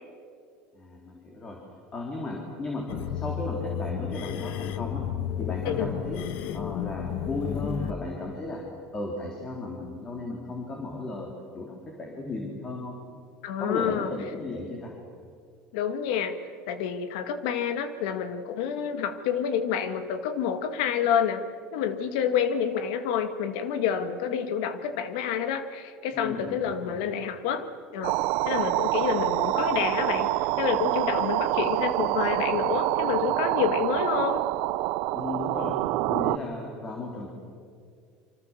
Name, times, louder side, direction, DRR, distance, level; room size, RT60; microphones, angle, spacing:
voice 1, 0.7-1.6 1.9-5.0 5.4-6.2 6.5-8.6 8.9-13.0 13.6-14.9 26.1-27.1 35.1-35.8 36.1-37.3, left 2 dB, 20° left, 0 dB, 3.6 m, -35 dB
sound 1, 2.9-7.9, left 10 dB, 60° left, 1.3 m, -32 dB
voice 2, 13.4-14.1 15.7-16.3 16.7-21.4 21.7-27.7 27.9-34.4, left 8 dB, 80° left, 9 dB, 2.0 m, -28 dB
sound 2, 28.0-36.4, right 19 dB, 65° right, 0.6 m, -26 dB
28.0 x 25.5 x 7.4 m, 2.3 s
cardioid pair, 155°, 4 cm